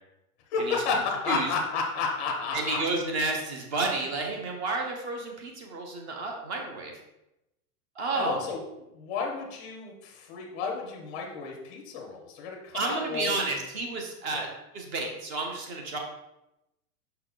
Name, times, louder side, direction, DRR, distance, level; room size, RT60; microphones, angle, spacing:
voice 1, 0.5-2.8 8.1-13.4 14.3-14.4, left 4 dB, 10° left, 0 dB, 0.4 m, -32 dB
voice 2, 2.5-6.9 7.9-8.4 12.7-14.5 14.7-16.0, right 3 dB, 45° right, 1 dB, 1.0 m, -31 dB
5.7 x 4.4 x 3.9 m, 0.92 s
supercardioid pair, 175°, 45 cm